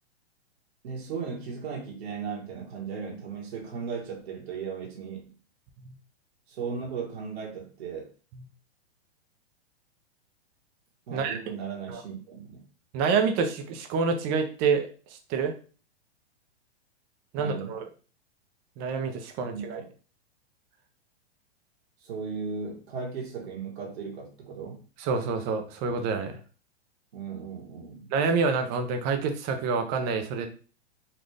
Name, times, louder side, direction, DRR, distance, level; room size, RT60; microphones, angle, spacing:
voice 1, 0.8-5.2 6.5-8.1 11.1-12.6 17.3-17.7 19.4-19.9 22.0-24.8 27.1-28.1, right 5 dB, 70° right, 1.3 m, -36 dB
voice 2, 12.9-14.9 15.3-15.5 17.3-17.9 18.8-19.8 25.0-26.4 28.1-30.5, right 5 dB, 30° right, 0.5 m, -27 dB
4.1 x 2.5 x 3.2 m
hypercardioid pair, 135°, 33 cm